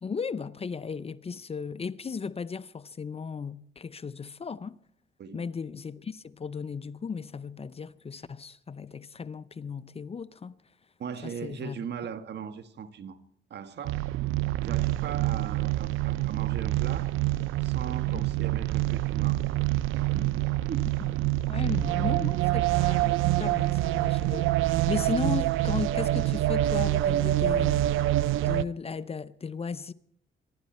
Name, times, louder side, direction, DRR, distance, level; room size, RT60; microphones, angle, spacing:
voice 1, 0.0-4.8 5.3-10.6 11.2-11.9 18.1-18.2 21.0-21.1 21.5-28.1 28.4-29.9, left 5 dB, 30° left, 0.7 m, -36 dB
voice 2, 11.0-13.2 13.5-14.0 14.6-17.1 17.6-19.4 19.9-20.9 21.7-22.2, right 7 dB, 60° right, 1.5 m, -39 dB
sound 1, 13.8-28.6, right 15 dB, 85° right, 0.6 m, -26 dB
25.0 x 11.5 x 4.4 m
cardioid pair, 90°, 20 cm